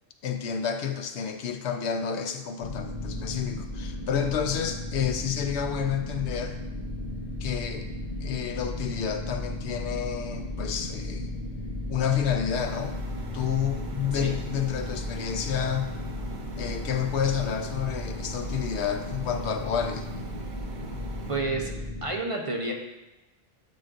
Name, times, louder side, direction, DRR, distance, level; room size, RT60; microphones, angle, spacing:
voice 1, 0.2-6.6 7.4-7.9 8.2-11.3 11.9-13.0 13.3-16.0 16.6-20.1, left 8 dB, 90° left, 7 dB, 0.9 m, -30 dB
sound 1, 2.6-22.1, left 1 dB, 45° left, 1.2 m, -35 dB
sound 2, 12.5-21.4, right 3 dB, 85° right, 1.1 m, -43 dB
voice 2, 21.3-21.7 22.0-22.7, right 3 dB, 35° right, 0 dB, 0.8 m, -30 dB
11.5 x 4.9 x 2.6 m, 1.0 s
omnidirectional pair, 1.1 m